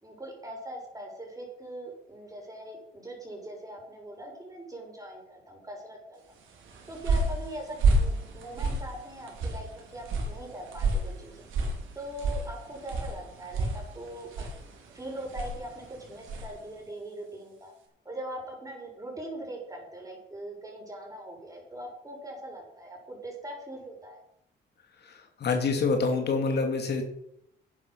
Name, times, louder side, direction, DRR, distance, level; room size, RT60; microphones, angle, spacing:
voice 1, 0.0-6.4 6.9-11.5 11.9-14.3 14.9-17.7 18.0-24.2, right 1 dB, 15° right, -1 dB, 6.2 m, -41 dB
sound 1, 6.5-16.6, right 2 dB, 85° right, 4.0 m, -31 dB
voice 2, 25.1-27.0, left 4 dB, 55° left, 4 dB, 2.4 m, -27 dB
11.0 x 9.2 x 6.3 m, 0.76 s
cardioid pair, 90°, 20 cm